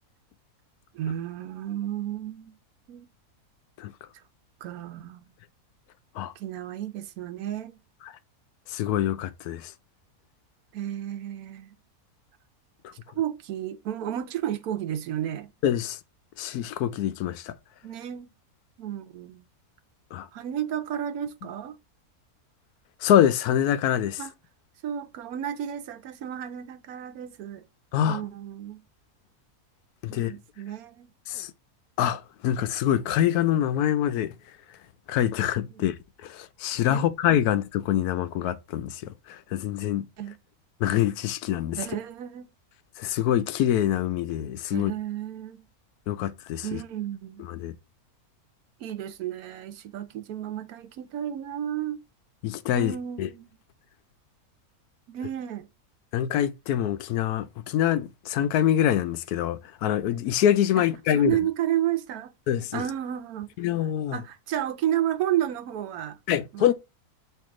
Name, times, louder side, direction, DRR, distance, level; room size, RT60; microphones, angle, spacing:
voice 1, 0.9-2.6 2.9-3.1 4.6-5.3 6.4-7.7 10.7-11.7 13.1-15.5 17.8-18.3 18.8-19.4 20.3-21.7 24.2-24.3 24.8-27.6 28.0-28.8 30.1-31.1 35.7-35.8 36.9-37.0 40.2-40.4 41.8-42.5 44.7-45.7 46.6-47.4 48.8-52.0 52.7-53.5 55.1-55.7 60.7-62.3 62.7-63.5 64.1-66.2 66.5-66.7, right 11 dB, 75° right, 1.1 m, -32 dB
voice 2, 8.7-9.7 15.6-16.0 16.4-17.5 20.1-20.3 23.0-24.2 27.9-28.2 30.0-30.3 31.3-31.5 32.0-34.3 35.1-35.9 36.2-39.0 39.5-40.1 40.8-41.8 43.0-44.9 46.1-46.6 47.6-47.7 52.4-53.3 56.1-61.4 62.5-62.8 63.6-64.2 66.3-66.7, left 11 dB, 90° left, 1.1 m, -25 dB
4.6 x 3.0 x 3.6 m
omnidirectional pair, 1.6 m